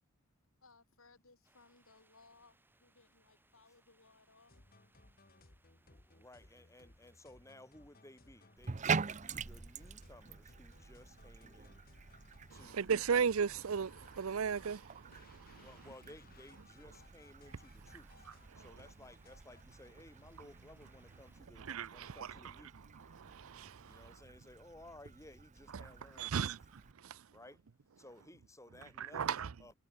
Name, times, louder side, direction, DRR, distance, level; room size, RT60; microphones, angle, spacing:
voice 1, 0.6-4.6, left 3 dB, 75° left, 5.6 m, -64 dB
sound 1, 1.4-21.4, right 2 dB, 10° right, 6.5 m, -73 dB
sound 2, 4.5-19.7, left 2 dB, 45° left, 2.6 m, -63 dB
voice 2, 5.8-11.8 12.5-13.0 15.6-18.1 18.5-22.9 23.8-26.6 27.3-27.6 28.0-29.7, left 1 dB, 15° left, 7.0 m, -58 dB
Bathtub (filling or washing), 8.6-26.9, right 5 dB, 35° right, 0.6 m, -45 dB
voice 3, 12.7-14.9 15.3-15.6 21.7-22.1 23.1-24.0 26.2-26.6 27.0-27.2 29.0-29.5, right 6 dB, 75° right, 0.5 m, -35 dB
head